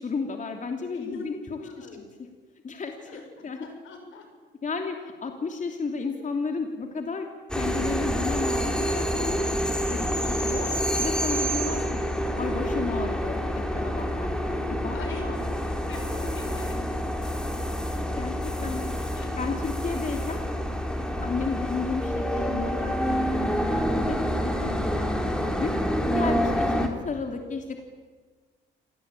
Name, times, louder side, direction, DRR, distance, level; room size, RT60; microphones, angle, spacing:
voice 1, 0.0-1.9 2.6-3.6 4.6-7.3 7.5-10.7 11.0-11.8 12.4-13.5 13.7-15.4 18.2-18.4 18.6-18.9 19.4-20.4 21.2-24.2 24.4-25.7 26.1-27.8, left 4 dB, 40° left, 4 dB, 3.0 m, -33 dB
voice 2, 0.9-1.3 1.6-2.1 3.1-4.3 14.9-15.3 15.7-16.8 18.7-18.9 19.2-19.5, left 4 dB, 80° left, 5 dB, 6.7 m, -42 dB
sound 1, 7.5-26.9, equal, 5° left, 4.0 m, -27 dB
27.0 x 19.0 x 9.0 m, 1.4 s
cardioid pair, 90°, 20 cm